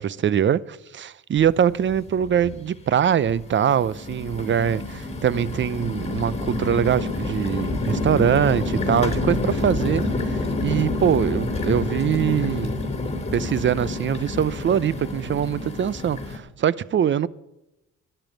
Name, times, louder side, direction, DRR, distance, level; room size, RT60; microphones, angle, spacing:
voice 1, 0.0-12.8 13.3-17.3, right 9 dB, 40° right, 0.6 m, -23 dB
sound 1, 1.4-1.5 1.9-2.5 3.2-16.4, left 2 dB, 20° left, 3.0 m, -28 dB
11.5 x 9.0 x 9.1 m
cardioid pair, 90°, 30 cm